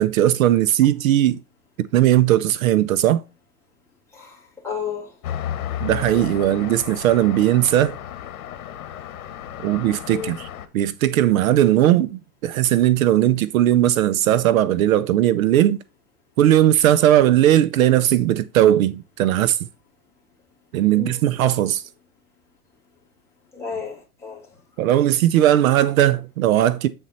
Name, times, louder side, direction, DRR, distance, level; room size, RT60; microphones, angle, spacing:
voice 1, 0.0-1.4 1.8-3.2 5.8-8.0 9.6-10.5 10.7-15.8 16.4-19.6 20.7-21.8 24.8-26.9, right 12 dB, 65° right, 0.6 m, -18 dB
voice 2, 4.6-5.1 10.1-10.3 20.9-21.2 23.5-24.4, left 6 dB, 5° left, 2.1 m, -32 dB
Traffic noise roadway noise, 5.2-10.7, left 10 dB, 70° left, 1.2 m, -33 dB
8.1 x 4.3 x 4.0 m
supercardioid pair, 155°, 44 cm